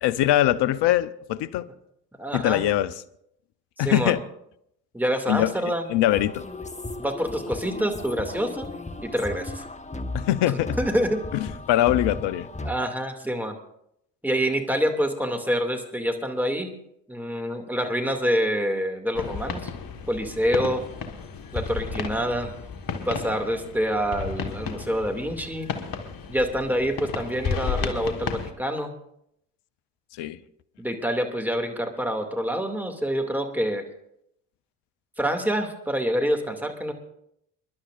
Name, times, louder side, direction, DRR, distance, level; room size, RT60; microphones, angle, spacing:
voice 1, 0.0-1.7 2.3-2.9 3.8-4.2 5.3-5.5 5.9-6.4 10.1-10.8 11.7-12.5 30.2-30.4, left 13 dB, 60° left, 0.8 m, -22 dB
voice 2, 2.2-2.6 3.8-4.1 4.9-5.9 7.0-8.7 9.0-9.5 10.8-11.2 12.6-13.6 14.2-16.7 17.1-19.6 20.1-20.8 21.5-22.5 23.1-25.7 26.3-28.9 30.8-33.8 35.2-36.9, equal, 5° right, 2.4 m, -26 dB
sound 1, 6.1-12.7, left 2 dB, 15° left, 1.3 m, -35 dB
sound 2, 19.1-28.5, left 5 dB, 45° left, 1.6 m, -33 dB
28.0 x 11.5 x 2.5 m
hypercardioid pair, 60°, 47 cm